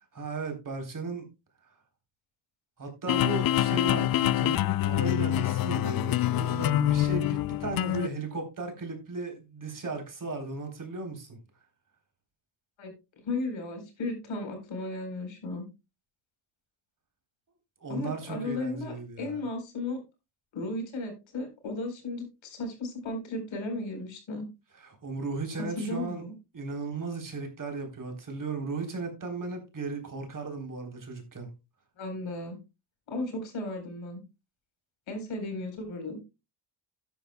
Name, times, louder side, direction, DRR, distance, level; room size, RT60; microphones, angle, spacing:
voice 1, 0.1-1.3 2.8-11.4 17.8-19.4 24.8-26.2 26.5-31.5, right 3 dB, 40° right, 3.7 m, -36 dB
sound 1, 3.1-8.1, left 13 dB, 50° left, 0.5 m, -26 dB
voice 2, 13.2-15.6 17.9-20.0 20.5-24.5 25.6-26.3 32.0-32.6 33.1-34.2 35.1-36.2, left 2 dB, 70° left, 4.3 m, -35 dB
12.5 x 9.9 x 2.2 m
cardioid pair, 80°, 48 cm